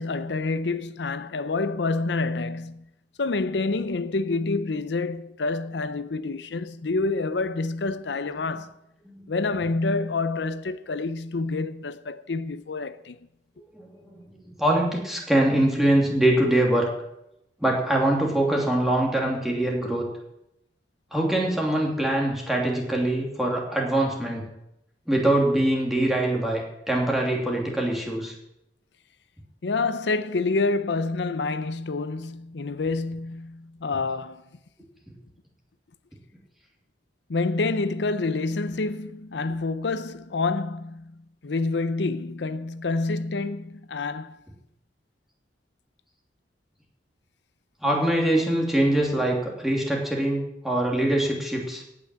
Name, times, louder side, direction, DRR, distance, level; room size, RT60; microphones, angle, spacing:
voice 1, 0.0-2.9 3.2-8.8 9.3-13.2 29.6-34.4 37.3-44.4, left 3 dB, 75° left, 0.6 m, -28 dB
voice 2, 13.6-16.9 17.6-20.1 21.1-24.4 25.1-28.3 47.8-51.8, right 1 dB, ahead, 2.9 m, -23 dB
17.5 x 6.0 x 7.8 m
head